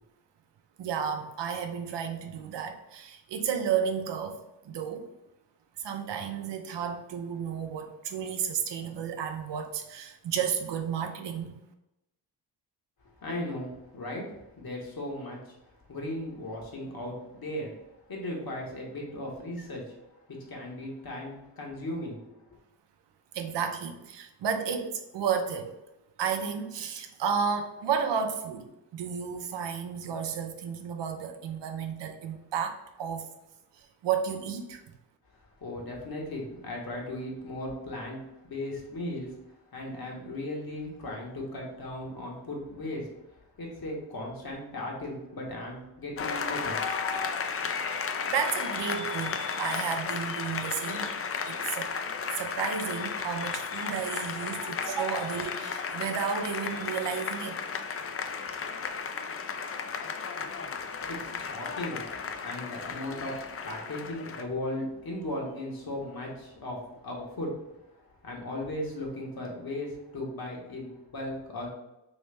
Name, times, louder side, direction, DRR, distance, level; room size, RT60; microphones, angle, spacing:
voice 1, 0.8-4.4 4.6-5.0 5.8-11.6 23.3-25.7 26.2-28.7 28.9-33.3 33.8-34.8 47.6-47.7 48.3-51.1 51.5-51.9 52.4-57.6, right 7 dB, 75° right, 6 dB, 0.6 m, -32 dB
voice 2, 13.2-14.2 14.5-15.6 15.9-17.7 18.1-19.9 20.3-22.3 35.6-39.3 39.7-43.1 43.6-47.1 61.1-63.3 63.6-67.5 68.2-71.7, left 1 dB, 55° left, -2 dB, 1.3 m, -37 dB
Applause, 46.2-64.4, left 5 dB, 35° left, 0.4 m, -34 dB
3.1 x 3.1 x 3.3 m, 0.92 s
cardioid pair, 55°, 42 cm